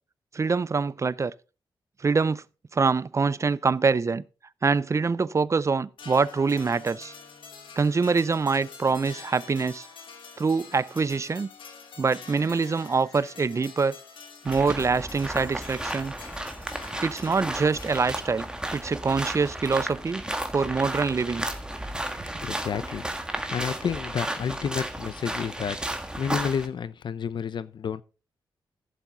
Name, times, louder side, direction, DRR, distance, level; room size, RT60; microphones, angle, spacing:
voice 1, 0.3-1.3 2.0-2.4 2.7-4.2 4.6-7.1 7.8-9.9 10.4-11.5 12.0-14.0 14.4-16.1 17.0-20.2 20.5-21.5, right 4 dB, 35° right, 0.5 m, -25 dB
sound 1, 6.0-18.5, left 5 dB, 80° left, 2.2 m, -46 dB
sound 2, 14.5-26.7, right 1 dB, 10° right, 1.7 m, -33 dB
voice 2, 22.4-25.8 26.2-28.0, left 7 dB, 65° left, 0.7 m, -30 dB
14.5 x 7.2 x 3.9 m
cardioid pair, 75°, 9 cm